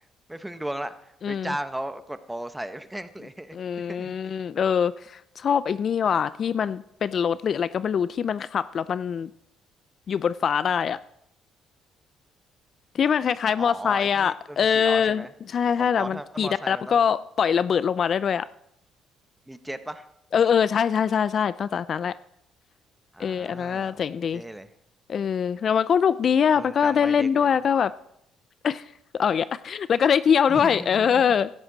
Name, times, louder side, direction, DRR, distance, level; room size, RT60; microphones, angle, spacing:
voice 1, 0.3-3.6 3.9-4.1 13.6-15.3 15.8-17.1 19.5-20.1 23.1-24.7 26.5-27.5 30.5-31.3, right 1 dB, 5° right, 11 dB, 1.0 m, -36 dB
voice 2, 1.2-1.5 3.5-9.3 10.1-11.0 12.9-18.5 20.3-22.1 23.2-24.4 25.1-27.9 28.6-28.9 29.1-31.5, left 7 dB, 50° left, 17 dB, 0.4 m, -23 dB
16.0 x 12.5 x 4.0 m, 0.77 s
cardioid pair, 85°, 0 cm